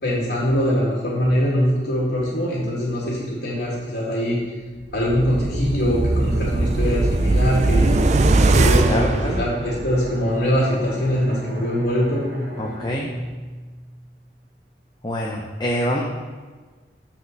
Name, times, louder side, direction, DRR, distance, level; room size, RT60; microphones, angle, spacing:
voice 1, 0.0-4.4 4.9-7.9 8.4-12.2, equal, 80° left, -8 dB, 2.2 m, -22 dB
sound 1, 4.9-10.1 10.5-10.6, right 2 dB, 40° right, 0.4 m, -20 dB
Bowed string instrument, 8.7-14.3, equal, 75° right, 1.8 m, -37 dB
voice 2, 8.8-9.4 12.6-13.1 15.0-16.0, equal, 25° left, -1 dB, 0.6 m, -25 dB
6.4 x 4.9 x 6.6 m, 1.4 s
head